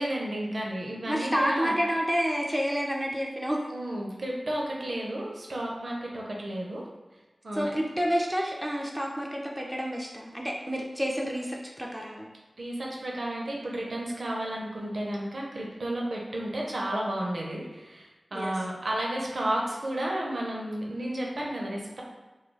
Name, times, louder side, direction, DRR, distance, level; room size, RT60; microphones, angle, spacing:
voice 1, 0.0-1.7 3.7-6.9 7.4-7.7 12.6-22.0, right 1 dB, 70° right, -2 dB, 0.6 m, -32 dB
voice 2, 1.1-3.6 7.5-12.3 18.3-18.6, equal, 10° right, -1 dB, 0.4 m, -29 dB
2.3 x 2.2 x 3.1 m, 1.1 s
cardioid pair, 45°, 0 cm